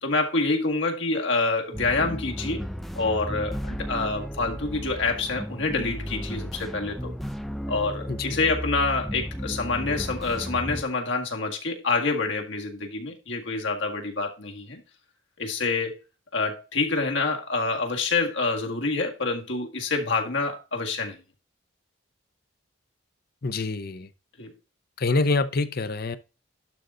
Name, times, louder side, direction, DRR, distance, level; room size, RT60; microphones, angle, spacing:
voice 1, 0.0-2.6 3.0-7.1 7.7-14.8 15.4-16.0 16.3-21.2 24.4-24.5, left 3 dB, 70° left, 1.9 m, -27 dB
sound 1, 1.7-10.8, equal, ahead, 0.5 m, -34 dB
voice 2, 8.1-8.4 23.4-24.1 25.0-26.2, left 3 dB, 50° left, 0.7 m, -26 dB
11.5 x 3.9 x 3.8 m
head